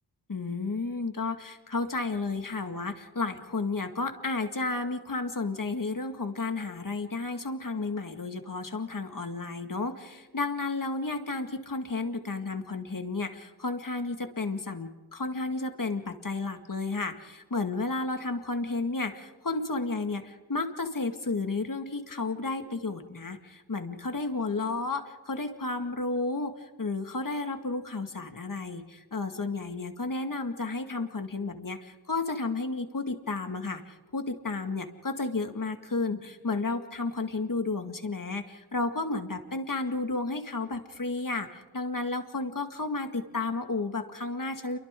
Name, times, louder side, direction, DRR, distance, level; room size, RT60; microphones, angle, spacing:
voice 1, 0.3-44.8, left 3 dB, 50° left, 6 dB, 2.1 m, -32 dB
29.0 x 23.0 x 3.8 m, 1.2 s
cardioid pair, 45°, 41 cm